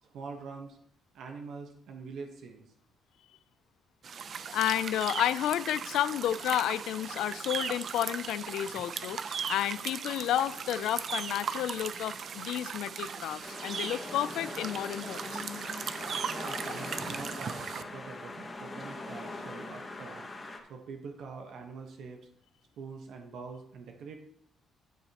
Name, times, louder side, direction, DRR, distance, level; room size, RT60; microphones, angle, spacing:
voice 1, 0.0-0.8 1.1-2.6 16.3-20.2 20.7-22.3 22.8-24.2, right 4 dB, 75° right, 3 dB, 1.2 m, -44 dB
sound 1, 4.0-17.8, right 6 dB, 55° right, 0.6 m, -38 dB
voice 2, 4.5-15.4, left 12 dB, 85° left, 15 dB, 0.3 m, -31 dB
sound 2, 13.4-20.6, left 2 dB, 25° left, 1.7 m, -41 dB
12.0 x 6.9 x 3.0 m, 0.67 s
cardioid pair, 90°, 0 cm